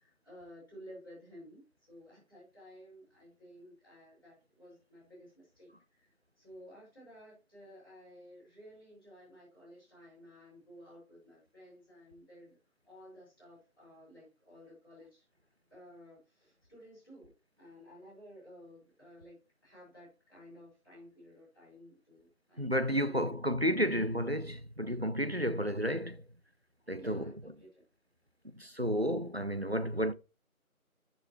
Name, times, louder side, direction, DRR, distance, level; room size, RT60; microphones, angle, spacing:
voice 1, 0.0-12.6 12.8-15.3 15.7-22.7 23.0-23.5 27.0-27.8, equal, 15° left, 5.3 m, -55 dB
voice 2, 22.6-26.2 26.9-27.3 28.6-30.1, equal, 45° right, 0.5 m, -31 dB
10.5 x 6.4 x 3.0 m
figure-of-eight pair, 180°, 43 cm